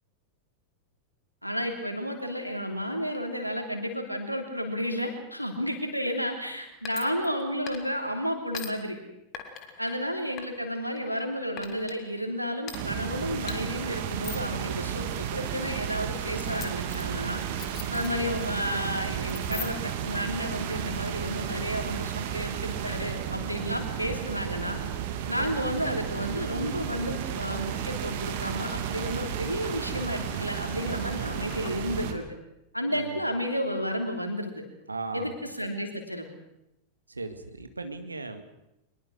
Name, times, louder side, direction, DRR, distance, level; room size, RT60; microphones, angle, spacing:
voice 1, 1.4-9.0 9.8-17.4 17.9-24.8 25.3-32.3 32.7-34.6 35.1-36.3, equal, 90° left, 4 dB, 3.2 m, -32 dB
sound 1, 6.8-7.4 7.7-8.1 8.5-8.7 9.3-9.9 10.4-11.2 11.6-12.0 12.6-12.8 13.5-13.6 14.1-14.5 15.0-15.2 16.4-18.5 18.7-18.9 19.3-20.0, left 9 dB, 35° left, 2.6 m, -41 dB
sound 2, 12.7-32.1, right 9 dB, 50° right, 2.4 m, -33 dB
sound 3, 26.1-31.7, left 7 dB, 50° left, 2.9 m, -48 dB
voice 2, 32.9-33.2 34.9-35.3 37.1-38.4, right 3 dB, 80° right, 8 dB, 2.0 m, -37 dB
23.5 x 21.0 x 6.3 m, 0.87 s
figure-of-eight pair, 90°, 0 cm